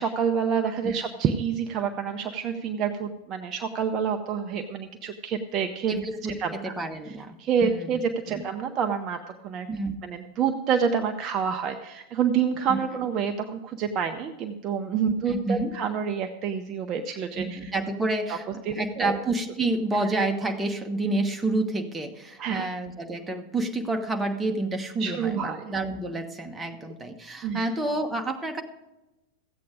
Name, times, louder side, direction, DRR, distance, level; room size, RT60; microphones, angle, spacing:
voice 1, 0.0-6.0 6.2-6.7 7.4-9.7 10.0-17.7 18.3-18.4 18.7-19.2 22.4-22.7 25.0-25.7 27.4-27.7, right 7 dB, 35° right, 6 dB, 0.7 m, -28 dB
voice 2, 5.9-7.4 7.6-7.9 8.3-8.4 9.7-9.9 12.7-12.8 15.1-15.7 17.3-18.5 18.7-28.6, right 2 dB, 10° right, 4 dB, 1.2 m, -29 dB
14.5 x 8.5 x 5.0 m, 0.98 s
figure-of-eight pair, 90°, 0 cm